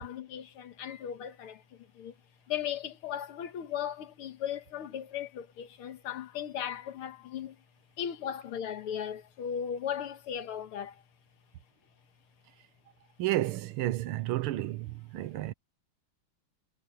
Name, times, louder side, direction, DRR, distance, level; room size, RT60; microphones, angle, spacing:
voice 1, 0.0-2.2 2.5-7.6 8.0-11.0, left 9 dB, 80° left, 2.1 m, -37 dB
voice 2, 13.2-15.5, right 15 dB, 85° right, 1.7 m, -31 dB
omnidirectional pair, 2.4 m